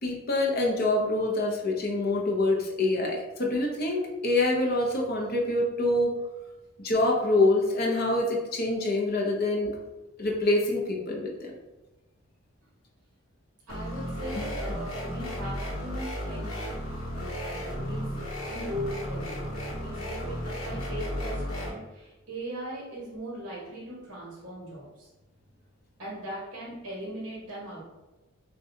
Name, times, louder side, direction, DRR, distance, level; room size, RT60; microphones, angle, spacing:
voice 1, 0.0-6.2 6.8-9.7 10.2-11.5 14.5-14.6, left 2 dB, 45° left, -1 dB, 0.7 m, -26 dB
sound 1, 13.7-21.7, equal, 80° left, 1.3 m, -34 dB
voice 2, 13.7-16.7 17.1-18.2 18.5-25.1 26.0-27.8, right 1 dB, 55° right, -6 dB, 1.4 m, -39 dB
6.2 x 2.3 x 2.7 m, 1.1 s
head